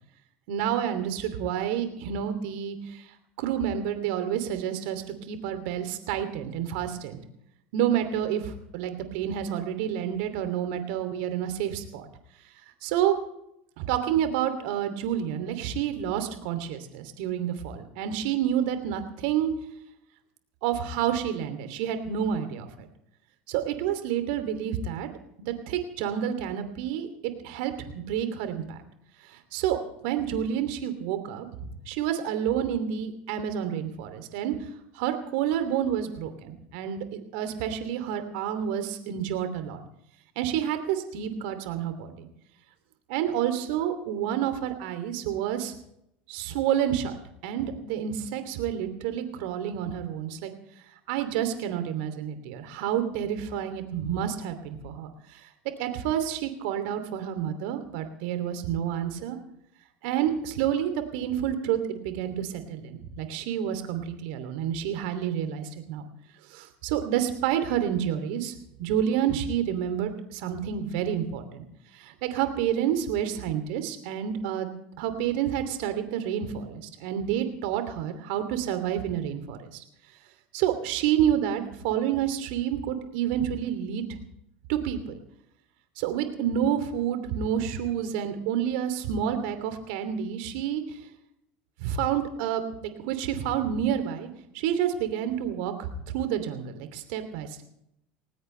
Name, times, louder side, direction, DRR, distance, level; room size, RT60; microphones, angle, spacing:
voice 1, 0.5-3.1 3.4-7.2 7.7-12.1 12.8-13.1 13.8-19.5 20.6-22.9 23.5-25.1 25.4-27.1 27.4-28.8 29.2-29.8 30.0-34.5 34.9-39.8 40.4-42.3 43.1-45.7 46.3-47.2 47.4-50.5 51.1-55.5 55.8-59.4 60.0-66.1 66.5-68.5 68.8-71.6 71.9-74.7 75.0-79.8 80.5-84.0 84.7-85.1 86.0-91.0 91.8-94.3 94.5-95.9 96.1-97.6, right 9 dB, 70° right, 9 dB, 2.8 m, -29 dB
20.5 x 19.0 x 3.3 m, 0.79 s
hypercardioid pair, 80°, 5 cm